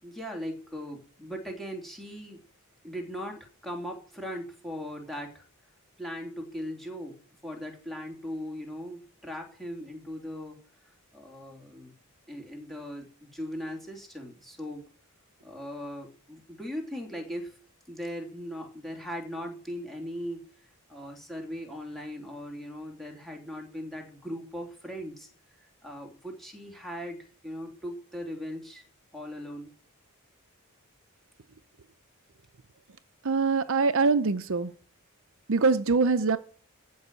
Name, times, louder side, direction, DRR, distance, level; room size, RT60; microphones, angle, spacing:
voice 1, 0.0-2.4 2.8-5.4 6.0-10.6 11.1-11.9 12.3-14.8 15.4-17.6 17.9-25.3 25.6-28.8 29.1-29.7, equal, ahead, 3.2 m, -39 dB
voice 2, 33.2-34.7 35.5-36.4, right 4 dB, 60° right, 0.7 m, -23 dB
15.0 x 5.5 x 8.9 m
head